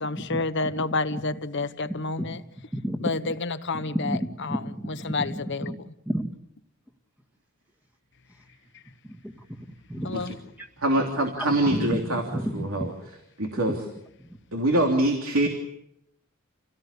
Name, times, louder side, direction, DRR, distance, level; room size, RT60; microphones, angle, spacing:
voice 1, 0.0-2.4 3.0-5.9 8.7-8.8 10.0-10.4, left 3 dB, 60° left, 1.2 m, -30 dB
voice 2, 2.7-3.1 3.9-4.2 4.5-5.4 5.7-5.8 6.1-6.3 9.0-9.6 9.9-10.2 11.7-12.9, equal, 10° right, 1.9 m, -31 dB
voice 3, 10.8-12.2 12.5-12.9 13.4-13.8 14.5-15.5, right 1 dB, 75° right, 3.2 m, -24 dB
28.5 x 18.0 x 8.5 m
head